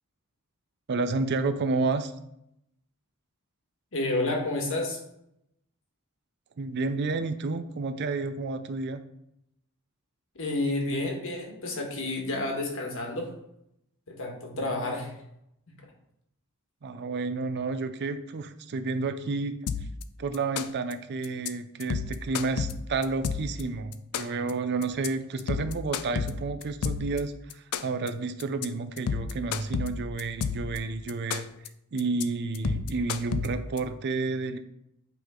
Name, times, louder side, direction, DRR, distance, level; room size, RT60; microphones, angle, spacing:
voice 1, 0.9-2.1 6.6-9.0 14.5-15.0 16.8-19.5 20.2-31.5 31.9-34.6, right 3 dB, 50° right, 10 dB, 0.5 m, -30 dB
voice 2, 3.9-5.0 10.3-13.3 14.1-15.1, left 2 dB, 65° left, 1 dB, 1.4 m, -30 dB
sound 1, 19.7-20.0 20.3-20.9 21.2-21.5 21.8-23.6 23.9-24.5 24.8-25.1 25.4-27.2 27.5-28.1 28.4-28.7 29.0-30.8 31.1-31.7 32.0-32.2 32.5-33.8, left 6 dB, 90° left, 0.4 m, -30 dB
8.2 x 3.6 x 3.7 m, 0.80 s
head